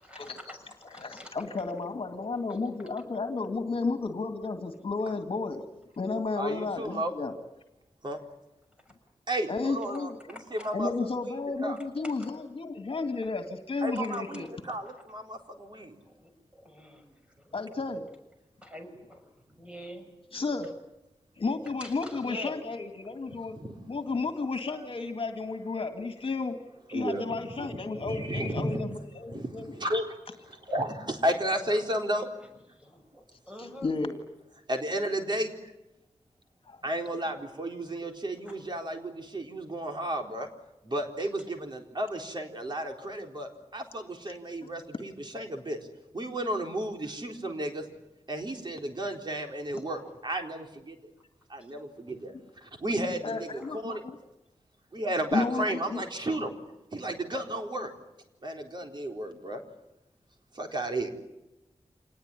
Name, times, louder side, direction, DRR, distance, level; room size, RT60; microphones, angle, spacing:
voice 1, 0.0-1.3 2.5-2.6 8.8-8.9 10.3-10.7 12.0-12.3 14.1-14.5 14.8-15.0 15.7-17.6 18.6-19.3 19.6-20.1 21.8-22.6 32.4-33.9 38.5-38.6 49.7-50.1 51.5-51.7 53.6-53.7, equal, 10° right, 4 dB, 6.7 m, -47 dB
voice 2, 1.0-5.6 6.0-7.4 9.5-10.2 10.7-14.5 17.5-18.0 20.3-20.7 21.4-23.6 23.9-26.6 26.9-29.8 33.6-34.2 36.7-36.8 49.7-49.8 53.2-54.2 55.3-56.0, left 3 dB, 55° left, 7 dB, 2.1 m, -32 dB
voice 3, 6.3-7.1 8.0-8.2 9.3-10.9 11.6-11.8 13.8-16.0 23.3-23.7 26.9-28.8 29.3-32.3 34.7-35.7 36.8-40.5 40.8-45.8 46.1-47.9 48.3-51.0 51.5-52.3 52.6-54.0 54.9-56.5 56.9-57.9 58.4-59.6 60.5-61.2, right 1 dB, 45° right, 3 dB, 4.1 m, -33 dB
27.0 x 19.5 x 9.9 m, 0.96 s
wide cardioid pair, 110°, 11 cm